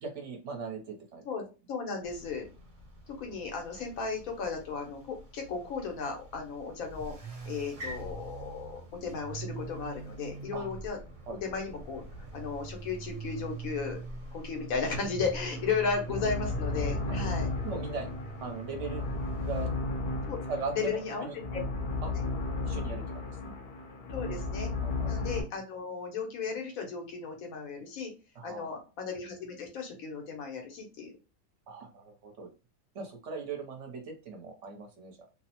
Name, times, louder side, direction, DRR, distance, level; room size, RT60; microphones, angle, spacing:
voice 1, 0.0-1.2 10.5-10.7 11.3-11.4 17.1-17.2 17.6-18.1 18.4-19.0 19.4-19.7 20.5-21.4 22.0-22.1 22.6-23.0 23.4-23.5 24.8-25.1 28.4-28.8 31.7-32.5 32.9-35.3, right 4 dB, 65° right, 3 dB, 1.0 m, -39 dB
voice 2, 1.2-2.4 3.2-7.1 7.5-11.0 11.4-12.0 12.3-14.0 14.3-17.5 20.3-20.4 20.7-21.6 24.1-24.7 25.1-28.1 28.4-31.1, left 5 dB, 90° left, 3 dB, 1.2 m, -35 dB
sound 1, 2.0-19.7, right 3 dB, 40° right, 1.0 m, -44 dB
sound 2, 15.4-25.4, left 3 dB, 60° left, 0.7 m, -34 dB
2.8 x 2.0 x 2.8 m, 0.31 s
omnidirectional pair, 1.4 m